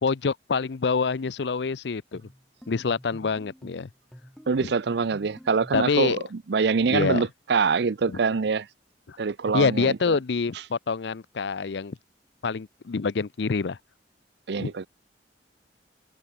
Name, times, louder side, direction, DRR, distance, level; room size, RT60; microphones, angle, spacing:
voice 1, 0.0-2.2 2.7-3.9 4.6-4.7 5.7-6.2 6.9-7.3 8.1-8.2 9.1-9.2 9.5-12.0 12.4-13.8 14.6-14.9, left 4 dB, 70° left, 0.6 m, -26 dB
sound 1, 2.1-6.0, equal, 5° left, 3.8 m, -49 dB
voice 2, 4.5-8.7 9.2-10.2 14.5-14.9, right 5 dB, 70° right, 0.6 m, -25 dB
head